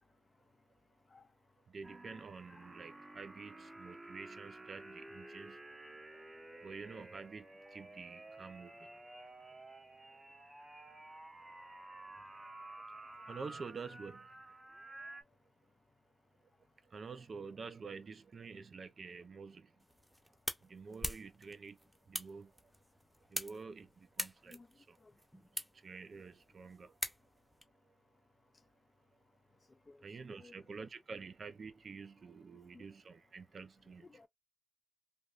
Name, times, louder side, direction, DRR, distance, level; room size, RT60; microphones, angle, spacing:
voice 1, 1.1-1.3 2.5-2.7 6.1-6.2 6.5-6.8 24.5-24.7 25.0-25.1 29.9-30.0 30.3-30.6 32.7-32.8 34.0-34.3, left 3 dB, 40° left, 0.3 m, -59 dB
voice 2, 1.7-5.6 6.6-9.0 12.9-14.4 16.8-19.8 20.6-22.7 23.3-24.6 24.9-25.0 25.5-27.0 30.0-34.1, right 5 dB, 65° right, 0.5 m, -49 dB
sound 1, 1.8-15.2, right 2 dB, 30° right, 0.9 m, -52 dB
sound 2, 19.8-27.6, equal, 5° right, 0.7 m, -45 dB
3.4 x 2.4 x 2.4 m
cardioid pair, 65°, 0 cm